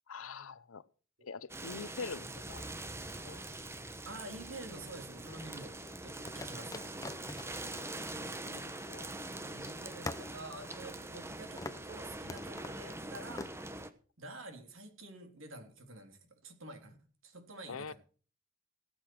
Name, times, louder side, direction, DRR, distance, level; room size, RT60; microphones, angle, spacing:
voice 1, 0.1-0.9 1.2-2.6 3.2-3.4 8.5-9.1 9.6-9.7 17.7-17.9, left 5 dB, 70° left, 0.7 m, -44 dB
sound 1, 1.5-13.9, right 2 dB, 10° right, 1.0 m, -43 dB
voice 2, 4.1-5.7 6.0-7.5 9.4-13.5 14.2-17.0 17.2-17.9, right 2 dB, 65° right, 3.5 m, -48 dB
sound 2, 4.2-5.1 6.3-9.2 9.5-9.6 10.1-11.3 11.6-11.9 12.3-12.8 13.4-13.6, left 2 dB, 15° left, 0.7 m, -45 dB
18.0 x 7.9 x 6.3 m
head